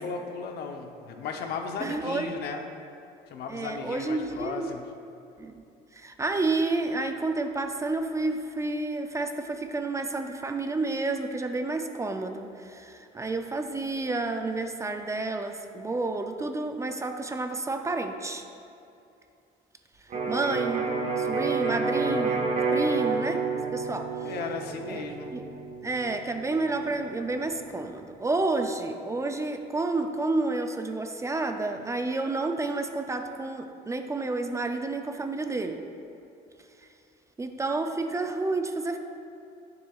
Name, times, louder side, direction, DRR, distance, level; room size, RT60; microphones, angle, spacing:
voice 1, 0.0-2.6 3.3-4.9 24.2-25.3, left 5 dB, 70° left, 4 dB, 0.8 m, -35 dB
voice 2, 1.8-2.4 3.5-4.8 5.4-5.5 5.9-18.4 20.3-20.9 21.2-24.1 24.9-25.0 25.3-25.5 25.8-35.8 37.4-39.0, right 3 dB, 20° right, 6 dB, 0.4 m, -30 dB
Electric guitar, 20.1-27.9, right 4 dB, 50° right, 1.1 m, -30 dB
9.5 x 6.8 x 2.4 m, 2.6 s
cardioid pair, 110°, 17 cm